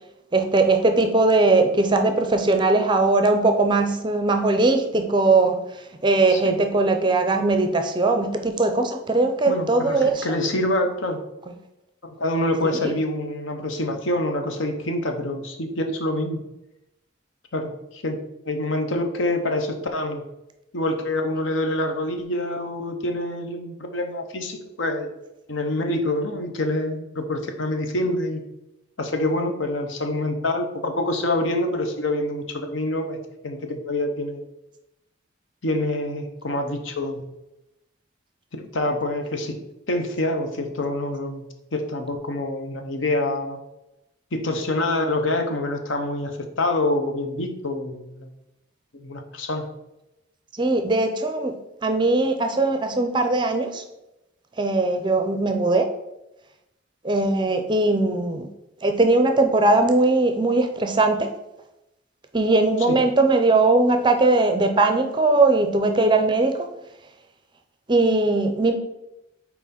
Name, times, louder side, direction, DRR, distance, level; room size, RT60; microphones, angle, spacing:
voice 1, 0.3-5.6 6.0-10.3 12.6-12.9 50.6-51.5 51.8-53.8 54.6-55.9 57.0-58.5 58.8-61.3 62.3-66.7 67.9-68.7, right 2 dB, 20° right, 6 dB, 0.5 m, -20 dB
voice 2, 9.4-11.2 12.0-16.4 17.5-18.2 18.4-20.2 20.7-25.1 25.5-28.4 29.0-33.2 33.4-34.4 35.6-37.2 38.5-39.6 39.9-41.4 41.7-43.6 44.3-48.3 49.0-49.7 62.9-63.0, left 1 dB, 70° left, 5 dB, 0.9 m, -26 dB
6.0 x 4.4 x 4.2 m, 0.91 s
head